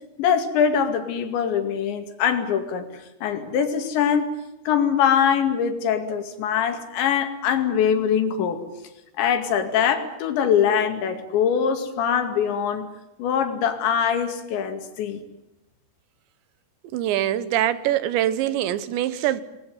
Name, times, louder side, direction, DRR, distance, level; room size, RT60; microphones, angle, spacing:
voice 1, 0.2-4.3 4.7-8.6 9.2-12.9 13.2-15.2, left 8 dB, 90° left, 7 dB, 4.7 m, -23 dB
voice 2, 16.9-19.4, right 12 dB, 85° right, 14 dB, 3.5 m, -23 dB
28.0 x 21.0 x 9.5 m, 0.91 s
omnidirectional pair, 5.0 m